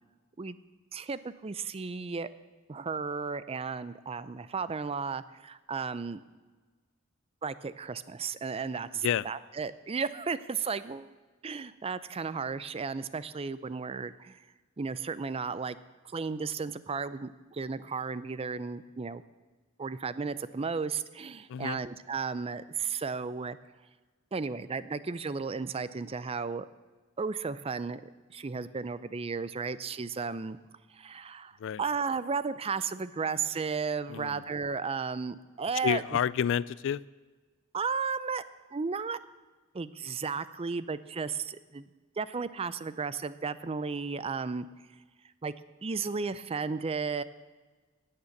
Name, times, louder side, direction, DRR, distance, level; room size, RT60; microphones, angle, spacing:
voice 1, 0.9-2.3 2.7-6.2 7.4-11.1 11.4-14.4 14.8-15.8 16.1-19.2 19.8-23.6 24.3-26.7 27.2-28.0 28.3-30.6 30.9-31.5 31.8-36.0 37.7-38.4 38.7-39.2 39.7-41.9 42.2-44.7 45.4-45.5 45.8-47.2, right 5 dB, 30° right, 15 dB, 0.5 m, -34 dB
voice 2, 34.1-34.4 35.8-37.0, left 8 dB, 65° left, 21 dB, 0.3 m, -29 dB
18.5 x 6.6 x 7.2 m, 1.3 s
head